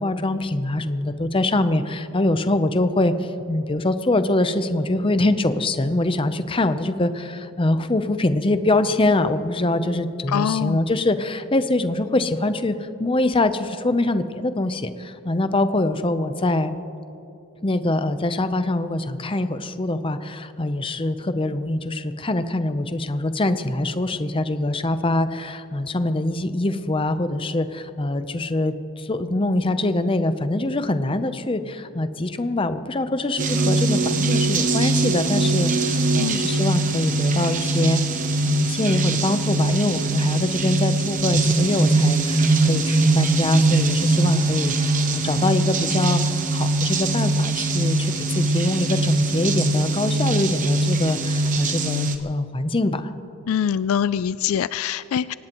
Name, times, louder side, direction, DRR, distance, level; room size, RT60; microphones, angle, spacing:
voice 1, 0.0-16.8 17.6-53.1, left 2 dB, 25° left, 10 dB, 0.6 m, -24 dB
voice 2, 10.3-10.8 36.2-36.4 53.5-55.3, left 8 dB, 70° left, 16 dB, 0.3 m, -24 dB
sound 1, 33.4-52.2, right 2 dB, 35° right, 1.0 m, -21 dB
24.0 x 18.5 x 3.0 m, 3.0 s
head